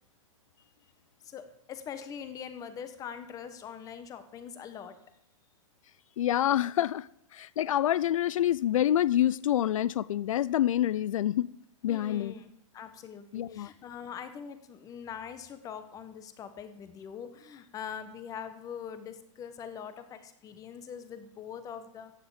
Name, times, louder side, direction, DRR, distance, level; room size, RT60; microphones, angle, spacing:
voice 1, 1.2-5.0 11.9-22.1, left 8 dB, 20° left, 1.2 m, -43 dB
voice 2, 6.2-11.5 11.8-12.3 13.3-13.7, left 12 dB, 80° left, 0.4 m, -27 dB
15.0 x 9.7 x 5.0 m
hypercardioid pair, 145°, 17 cm